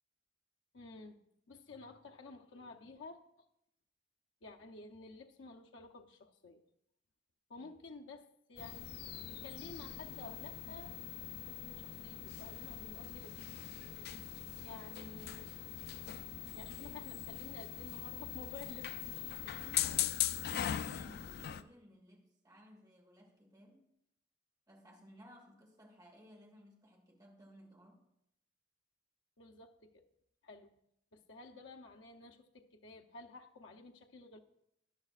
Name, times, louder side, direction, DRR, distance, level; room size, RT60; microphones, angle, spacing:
voice 1, 0.7-1.2 1.5-3.5 4.4-6.6 7.5-9.0 9.3-13.4 14.6-15.4 16.5-18.9 29.4-30.0 30.4-30.7 31.1-34.4, left 3 dB, 85° left, 0.7 m, -52 dB
sound 1, 8.6-21.6, left 11 dB, 55° left, 0.4 m, -41 dB
voice 2, 19.4-20.0 20.4-23.8 24.7-28.1, equal, 20° right, 1.9 m, -59 dB
13.0 x 10.5 x 2.5 m
head